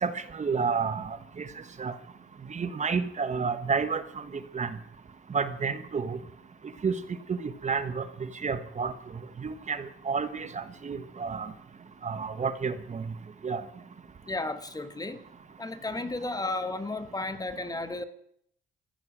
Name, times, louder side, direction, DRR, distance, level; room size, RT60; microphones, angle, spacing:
voice 1, 0.0-1.5 1.8-2.0 2.5-4.3 4.5-4.8 5.3-6.2 6.8-6.9 7.3-8.9 9.4-11.5 12.0-13.1 13.4-13.6, right 5 dB, 35° right, 12 dB, 1.3 m, -30 dB
voice 2, 14.3-15.2 15.6-18.0, left 2 dB, 20° left, 11 dB, 1.4 m, -33 dB
15.0 x 14.5 x 6.3 m, 0.68 s
cardioid pair, 90°, 20 cm